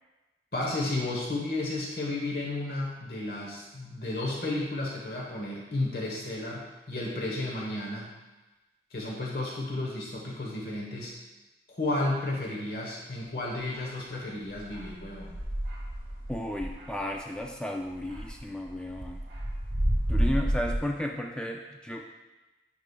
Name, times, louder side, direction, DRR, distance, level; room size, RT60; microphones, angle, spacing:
voice 1, 0.5-8.1 8.9-11.1 11.7-15.4, left 2 dB, 60° left, -3 dB, 1.1 m, -32 dB
sound 1, 13.7-13.8 14.5-17.5 17.9-20.8, equal, 55° right, 1.7 m, -30 dB
voice 2, 16.3-19.2 20.1-22.0, left 1 dB, 5° left, 1 dB, 0.3 m, -33 dB
9.6 x 5.0 x 2.3 m, 1.1 s
head